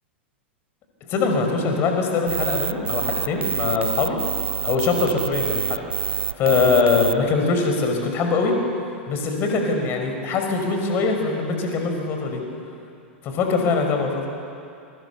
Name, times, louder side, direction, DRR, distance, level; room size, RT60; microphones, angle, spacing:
voice 1, 1.1-4.2 4.6-5.8 6.1-8.6 9.1-12.4 13.2-14.3, left 4 dB, 35° left, 3 dB, 5.4 m, -22 dB
sound 1, 2.3-7.1, right 7 dB, 75° right, 0.7 m, -27 dB
27.5 x 24.0 x 7.2 m, 2.5 s
figure-of-eight pair, 95°, 6 cm